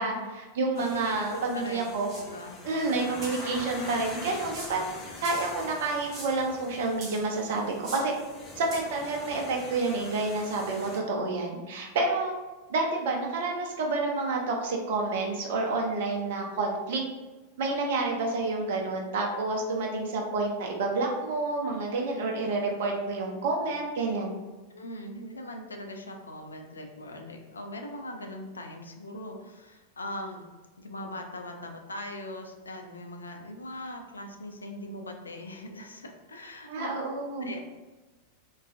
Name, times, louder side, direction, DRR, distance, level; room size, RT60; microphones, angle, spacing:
voice 1, 0.0-2.1 2.6-4.8 5.2-8.1 8.6-12.3 12.7-17.0 17.6-24.3 36.7-37.5, right 3 dB, 55° right, 1 dB, 0.6 m, -29 dB
voice 2, 0.7-3.2 11.2-11.3 24.7-30.4 30.8-37.0 37.4-37.6, left 1 dB, 75° left, 3 dB, 0.4 m, -41 dB
sound 1, 0.7-11.0, left 2 dB, 30° left, 0.8 m, -44 dB
sound 2, 2.1-2.3 3.2-3.5 4.5-4.9 5.2-5.5 6.1-6.4 7.0-7.4 7.8-8.1 8.7-8.8, right 2 dB, 30° right, 0.9 m, -41 dB
3.5 x 2.3 x 2.5 m, 1.2 s
figure-of-eight pair, 90°, 0 cm